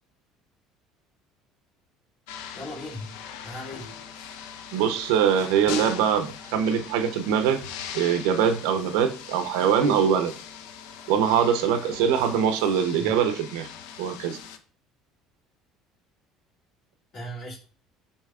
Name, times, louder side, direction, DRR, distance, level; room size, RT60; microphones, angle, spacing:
sound 1, 2.3-14.6, left 8 dB, 80° left, 0.5 m, -40 dB
voice 1, 2.5-3.2 3.4-3.9 13.0-13.1 17.1-17.6, left 1 dB, 55° left, -3 dB, 1.9 m, -37 dB
voice 2, 4.7-7.6 7.9-10.3 11.1-13.7 14.0-14.4, right 8 dB, 80° right, 10 dB, 0.5 m, -23 dB
6.5 x 2.8 x 2.3 m, 0.41 s
hypercardioid pair, 75°, 0 cm